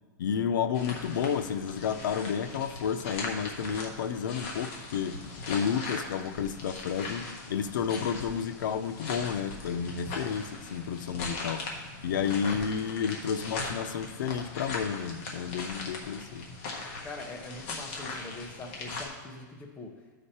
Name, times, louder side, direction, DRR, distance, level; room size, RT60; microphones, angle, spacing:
voice 1, 0.2-5.2 5.5-11.6 12.0-16.5, left 7 dB, 90° left, 10 dB, 0.6 m, -31 dB
sound 1, 0.7-19.0, left 3 dB, 40° left, 1.3 m, -40 dB
voice 2, 17.0-19.9, left 3 dB, 10° left, 2 dB, 0.8 m, -43 dB
12.5 x 5.1 x 4.3 m, 1.4 s
supercardioid pair, 170°, 10 cm